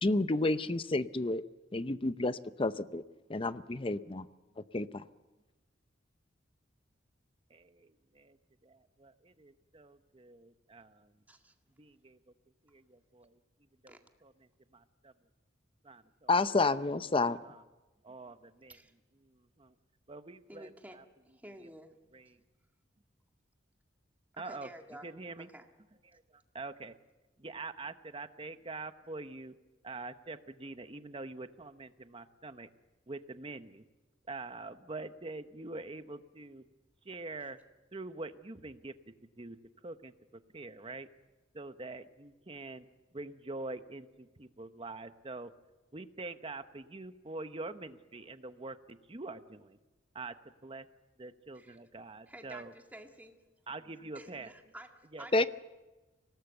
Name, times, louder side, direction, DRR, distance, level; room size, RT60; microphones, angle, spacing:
voice 1, 0.0-1.4 1.7-3.0 3.3-4.3 4.6-5.0 16.3-17.4 55.3-55.5, left 2 dB, 30° left, 13 dB, 0.7 m, -30 dB
voice 2, 7.5-8.4 8.6-11.2 11.8-12.3 12.6-13.4 13.8-15.1 15.8-16.3 17.4-17.6 18.0-18.8 19.1-19.8 20.1-21.0 21.6-21.7 22.1-22.4 24.4-24.7 25.0-25.5 26.0-26.9 27.4-29.5 29.8-32.7 33.1-33.8 34.3-36.6 37.0-37.6 37.9-41.1 41.5-42.9 43.1-45.5 45.9-49.8 50.1-50.3 50.6-50.9 51.2-52.7 53.7-54.5 55.1-55.5, right 3 dB, 30° right, 10 dB, 1.0 m, -45 dB
voice 3, 20.5-21.0 21.3-21.9 24.3-25.1 25.4-25.7 51.6-51.8 52.3-53.3 54.1-55.5, right 1 dB, 10° right, 3 dB, 1.9 m, -51 dB
25.5 x 18.5 x 8.0 m, 1.1 s
head